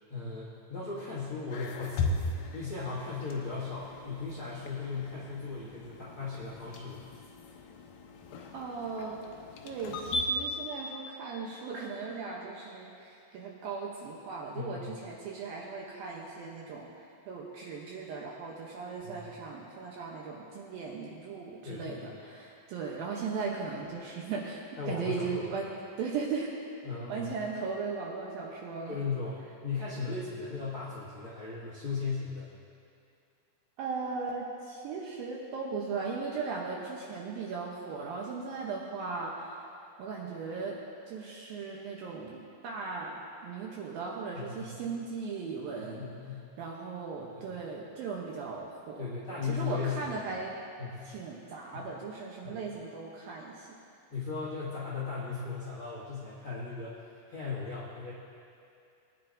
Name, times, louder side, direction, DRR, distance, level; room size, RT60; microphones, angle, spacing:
voice 1, 0.1-2.2 2.5-7.0 14.5-14.9 19.0-19.3 21.6-22.2 24.8-25.5 26.8-27.3 28.9-32.5 44.3-44.8 45.8-46.4 47.3-47.5 49.0-50.0 50.8-51.2 51.7-51.8 52.4-52.6 54.1-58.1, left 4 dB, 45° left, -8 dB, 1.7 m, -37 dB
sound 1, 1.5-10.2, left 3 dB, 80° left, 2.0 m, -38 dB
voice 2, 8.5-9.2 9.6-16.9 17.3-25.7 26.0-26.6 27.1-29.0 33.8-39.6 40.0-40.8 41.1-46.1 46.6-49.0 49.5-50.5 51.1-53.7, right 4 dB, 75° right, -2 dB, 2.3 m, -37 dB
20.5 x 10.0 x 2.6 m, 2.5 s
omnidirectional pair, 5.0 m